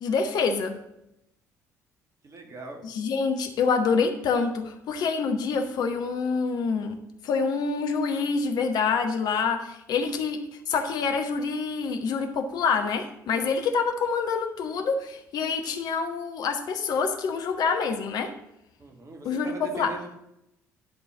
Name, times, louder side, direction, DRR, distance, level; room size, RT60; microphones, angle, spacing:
voice 1, 0.0-0.8 2.8-7.0 7.2-10.4 10.7-18.3 19.2-20.0, left 5 dB, 50° left, 5 dB, 1.2 m, -26 dB
voice 2, 2.2-2.8 18.8-20.2, right 3 dB, 35° right, 4 dB, 1.9 m, -41 dB
11.0 x 4.6 x 7.2 m, 0.82 s
figure-of-eight pair, 50°, 9 cm